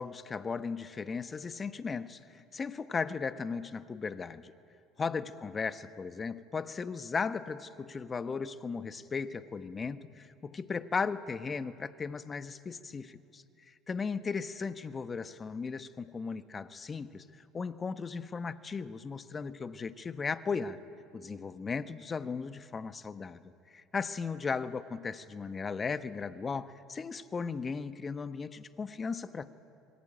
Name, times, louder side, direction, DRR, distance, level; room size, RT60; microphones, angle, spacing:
voice 1, 0.0-4.5 5.0-20.8 21.1-29.5, left 5 dB, 30° left, 11 dB, 1.3 m, -36 dB
27.0 x 23.0 x 9.0 m, 2.5 s
hypercardioid pair, 80°, 0 cm